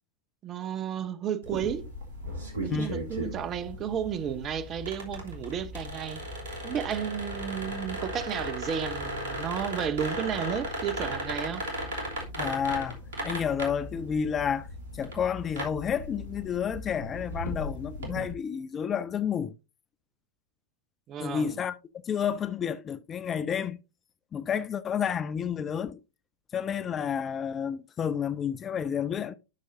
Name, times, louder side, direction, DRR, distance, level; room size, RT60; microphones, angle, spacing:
voice 1, 0.4-1.9 2.6-6.2 6.6-11.6 21.1-21.6, right 8 dB, 30° right, 0.9 m, -33 dB
sound 1, 1.4-18.3, equal, 65° right, 3.0 m, -36 dB
voice 2, 12.4-13.0 13.2-14.7 14.9-19.5 21.2-21.7 22.0-23.8 24.3-26.0 26.5-29.3, left 7 dB, 25° left, 0.5 m, -30 dB
11.5 x 6.4 x 2.7 m
figure-of-eight pair, 90°, 0 cm